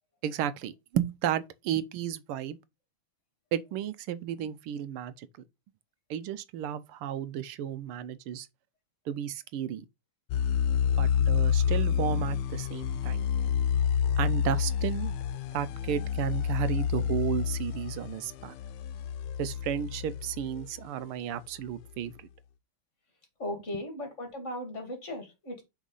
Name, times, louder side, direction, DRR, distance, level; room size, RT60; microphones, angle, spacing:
voice 1, 0.2-2.6 3.5-5.3 6.1-8.5 9.1-9.8 11.0-13.3 14.2-15.1 15.5-18.5 19.4-22.3, right 10 dB, 85° right, 1.5 m, -33 dB
sound 1, 10.3-20.8, left 8 dB, 80° left, 1.5 m, -28 dB
voice 2, 23.4-25.6, left 1 dB, 35° left, 2.4 m, -37 dB
6.1 x 4.1 x 5.3 m
omnidirectional pair, 2.4 m